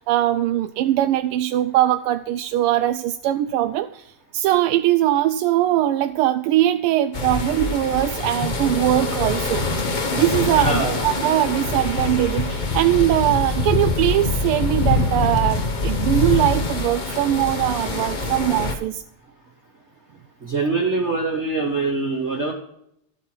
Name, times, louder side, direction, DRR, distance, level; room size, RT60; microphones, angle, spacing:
voice 1, 0.0-9.6 10.1-19.0, right 13 dB, 85° right, 8 dB, 1.5 m, -21 dB
sound 1, 7.1-18.7, left 3 dB, 45° left, 0.6 m, -24 dB
voice 2, 10.5-11.0 17.6-18.3 20.4-22.5, right 3 dB, 35° right, 1 dB, 1.4 m, -24 dB
13.0 x 8.2 x 4.6 m, 0.75 s
omnidirectional pair, 2.4 m